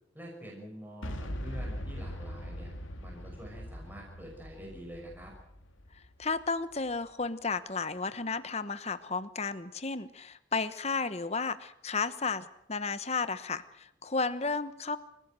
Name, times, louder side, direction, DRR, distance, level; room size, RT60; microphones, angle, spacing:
voice 1, 0.1-2.7 3.0-5.3, equal, 10° right, -1 dB, 6.0 m, -46 dB
Boom, 1.0-6.9, equal, 85° left, 2.9 m, -41 dB
voice 2, 5.9-15.0, left 4 dB, 35° left, 12 dB, 1.1 m, -33 dB
28.5 x 16.0 x 7.7 m, 0.75 s
head